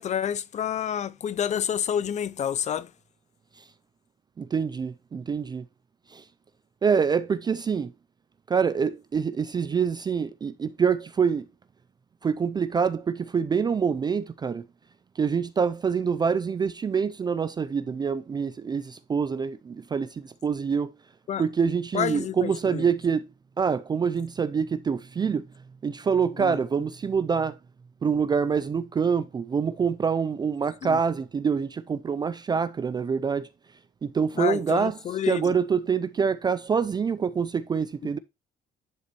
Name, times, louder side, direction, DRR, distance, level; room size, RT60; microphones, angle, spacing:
voice 1, 0.0-2.9 21.3-21.4 21.9-22.9 26.4-26.6 30.8-31.0 34.4-35.5, left 9 dB, 45° left, 0.6 m, -29 dB
voice 2, 4.4-5.7 6.1-6.3 6.8-7.9 8.5-11.5 12.2-14.7 15.2-20.9 21.4-23.3 23.6-25.5 25.8-27.6 28.0-33.5 34.0-35.0 35.3-38.2, right 6 dB, 25° right, 0.4 m, -26 dB
10.5 x 3.9 x 3.0 m
cardioid pair, 110°, 17 cm